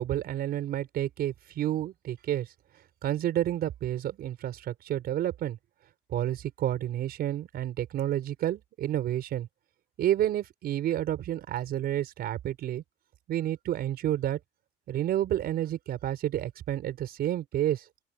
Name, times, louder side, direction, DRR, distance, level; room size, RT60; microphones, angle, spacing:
voice 1, 0.0-2.5 3.0-5.6 6.1-9.5 10.0-12.8 13.3-14.4 14.9-17.8, right 12 dB, 65° right, 4.9 m, -30 dB
open air
cardioid pair, 110°, 17 cm